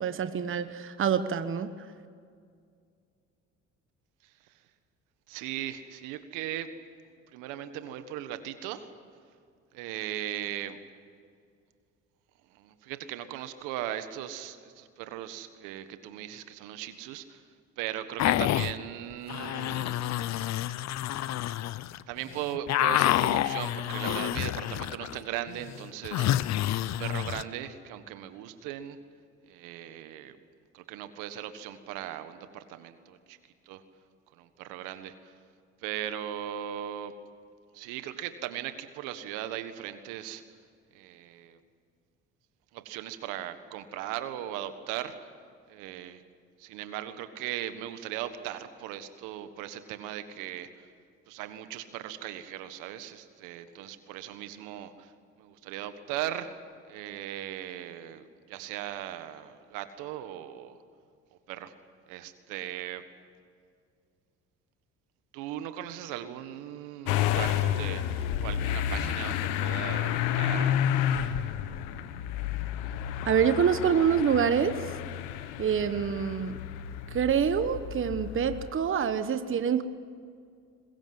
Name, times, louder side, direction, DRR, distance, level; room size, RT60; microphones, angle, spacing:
voice 1, 0.0-1.7 73.2-74.8 75.6-76.6 77.1-79.8, right 7 dB, 40° right, 11 dB, 1.3 m, -26 dB
voice 2, 4.2-4.6 5.3-6.7 7.3-8.9 9.7-10.8 12.5-17.4 17.8-20.3 22.1-26.4 26.8-29.0 29.5-30.4 30.7-33.4 33.6-33.8 34.3-35.3 35.8-37.1 37.7-40.4 40.9-41.6 42.7-45.3 45.7-46.2 46.6-50.9 51.3-55.1 55.4-56.6 56.9-60.8 61.5-61.7 62.1-63.0 65.3-70.8, right 12 dB, 80° right, 10 dB, 1.6 m, -38 dB
sound 1, 18.2-18.7 19.3-22.0 22.3-25.2 25.5-27.4, left 13 dB, 60° left, 0.8 m, -28 dB
Motor vehicle (road) / Engine starting, 67.1-78.7, left 10 dB, 80° left, 1.3 m, -30 dB
22.5 x 21.0 x 7.9 m, 2.2 s
supercardioid pair, 70°, 31 cm